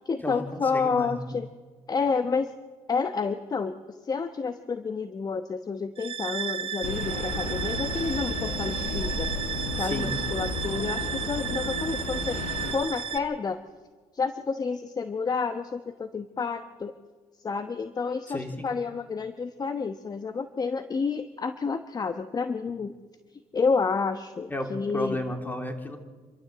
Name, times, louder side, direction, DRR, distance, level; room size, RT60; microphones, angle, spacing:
voice 1, 0.0-1.5 1.9-2.5 2.9-3.7 4.0-9.3 9.8-12.4 12.7-13.6 14.1-16.9 17.4-22.9 23.5-25.2, left 5 dB, 35° left, 10 dB, 1.1 m, -29 dB
voice 2, 0.7-1.3 9.8-10.2 18.3-18.7 24.5-26.0, left 1 dB, 15° left, 5 dB, 3.2 m, -33 dB
sound 1, 6.0-13.2, right 8 dB, 50° right, 1.1 m, -33 dB
sound 2, 6.8-12.7, left 2 dB, 90° left, 3.8 m, -33 dB
27.5 x 13.0 x 7.9 m, 1.4 s
cardioid pair, 80°, 12 cm